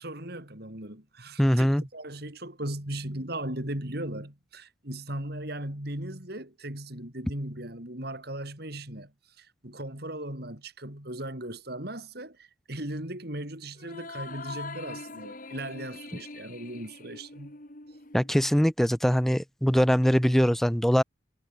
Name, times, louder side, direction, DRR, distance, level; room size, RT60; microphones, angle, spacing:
voice 1, 0.0-1.7 1.9-17.6, right 1 dB, 55° right, 4.6 m, -37 dB
voice 2, 1.4-1.8 18.1-21.0, equal, ahead, 0.4 m, -22 dB
sound 1, 13.8-18.5, left 3 dB, 45° left, 3.7 m, -43 dB
head